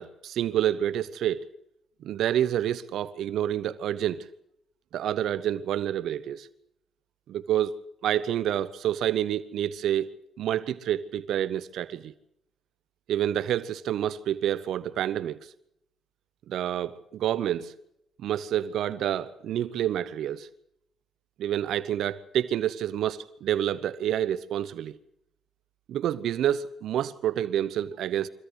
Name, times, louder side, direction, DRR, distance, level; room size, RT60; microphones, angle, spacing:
voice 1, 0.0-1.5 2.0-4.3 4.9-6.5 7.3-7.7 8.0-10.1 10.4-12.1 13.1-15.5 16.5-17.7 18.2-20.5 21.4-25.0 25.9-28.3, right 11 dB, 75° right, 0.9 m, -28 dB
25.0 x 15.5 x 9.7 m
cardioid pair, 90°, 0 cm